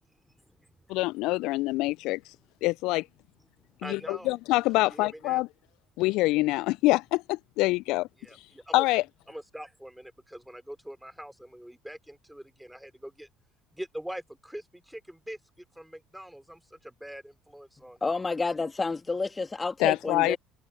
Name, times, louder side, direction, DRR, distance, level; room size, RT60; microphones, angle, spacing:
voice 1, 0.9-2.2 2.6-3.0 3.8-5.5 6.0-8.1 8.7-9.0 19.8-20.4, left 20 dB, 60° left, 0.6 m, -25 dB
voice 2, 3.8-4.3 4.8-5.4 8.2-8.8 9.3-13.3 13.7-15.4 15.8-18.0, equal, 5° right, 4.3 m, -43 dB
voice 3, 18.0-20.4, left 3 dB, 20° left, 1.8 m, -29 dB
figure-of-eight pair, 55°, 0 cm